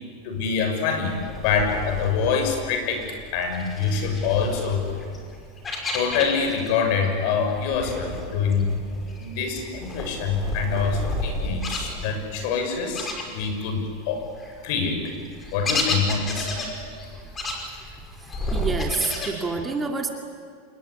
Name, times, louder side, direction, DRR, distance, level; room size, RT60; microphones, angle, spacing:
voice 1, 0.2-1.2 1.4-4.9 5.9-8.8 9.2-14.3 14.6-15.1 15.5-16.5, left 5 dB, 60° left, 5 dB, 6.6 m, -25 dB
sound 1, 1.0-6.8 7.0-13.8 14.2-19.3, left 1 dB, 20° left, 5.5 m, -32 dB
voice 2, 18.2-20.1, right 4 dB, 15° right, 3 dB, 2.6 m, -28 dB
27.0 x 22.0 x 9.8 m, 2.1 s
supercardioid pair, 130°, 0 cm